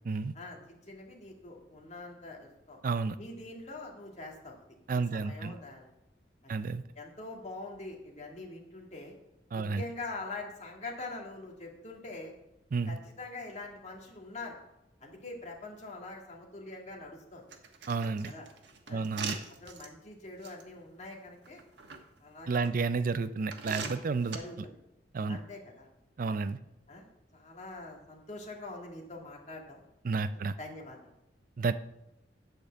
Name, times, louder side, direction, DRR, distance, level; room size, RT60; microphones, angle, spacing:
voice 1, 0.3-2.8 3.2-4.6 4.9-5.9 6.4-6.5 7.0-9.1 9.5-12.3 12.9-14.6 15.0-17.4 18.3-18.5 18.9-19.0 19.5-21.7 22.2-22.8 24.3-24.7 25.3-25.9 26.3-26.4 26.9-29.8 30.3-31.1, left 2 dB, 40° left, 0 dB, 2.1 m, -44 dB
voice 2, 2.8-3.2 4.9-5.5 6.5-6.8 9.5-9.8 12.7-13.0 17.9-18.3 18.9-19.4 22.5-24.4 25.1-25.4 26.2-26.6 30.0-30.5 31.6-31.7, right 4 dB, 50° right, 13 dB, 0.4 m, -31 dB
sound 1, 17.5-19.9 20.4-20.6 21.4-22.0 22.6-22.7 23.5-24.4, right 5 dB, 80° right, 1.2 m, -40 dB
9.7 x 5.1 x 7.5 m, 0.91 s
head